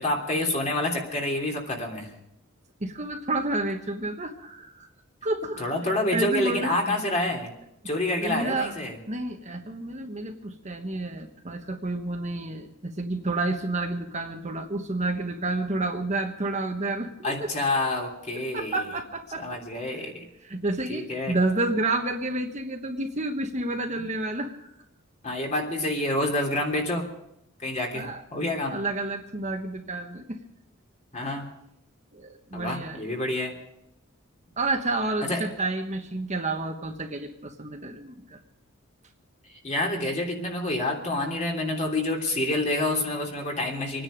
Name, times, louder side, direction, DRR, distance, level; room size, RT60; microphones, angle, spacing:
voice 1, 0.0-2.1 5.6-7.5 7.8-9.0 17.2-18.8 19.4-20.2 20.9-21.4 25.2-27.1 27.6-28.8 31.1-31.4 32.5-33.5 35.2-35.4 39.6-44.0, left 1 dB, 35° left, 0 dB, 3.2 m, -28 dB
voice 2, 2.8-4.9 5.2-7.0 8.2-8.7 9.1-17.5 18.5-19.4 19.8-20.1 20.4-24.7 27.9-28.2 28.7-30.4 32.1-33.0 34.6-38.4, right 2 dB, 35° right, 3 dB, 1.3 m, -30 dB
26.0 x 10.0 x 5.2 m, 0.83 s
head